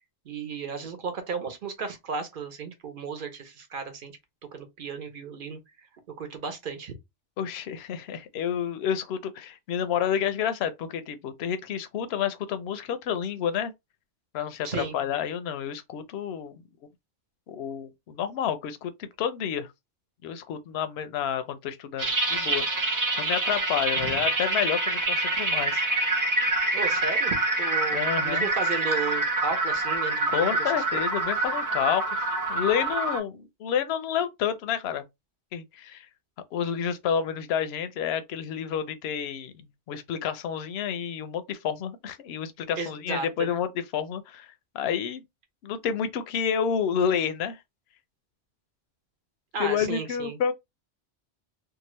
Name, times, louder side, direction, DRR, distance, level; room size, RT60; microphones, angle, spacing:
voice 1, 0.3-4.1 4.5-5.6 6.2-6.9 14.6-14.9 24.0-24.2 26.7-31.0 42.8-43.5 49.5-50.4, right 5 dB, 50° right, 0.9 m, -34 dB
voice 2, 7.4-13.7 14.3-16.6 17.5-19.7 20.2-25.8 27.9-28.5 30.3-32.1 32.5-35.0 35.5-36.1 36.5-44.5 44.7-45.2 45.6-47.6 49.6-50.5, left 8 dB, 70° left, 0.8 m, -29 dB
sound 1, 22.0-33.2, right 2 dB, 30° right, 0.4 m, -26 dB
2.8 x 2.4 x 3.0 m
omnidirectional pair, 1.2 m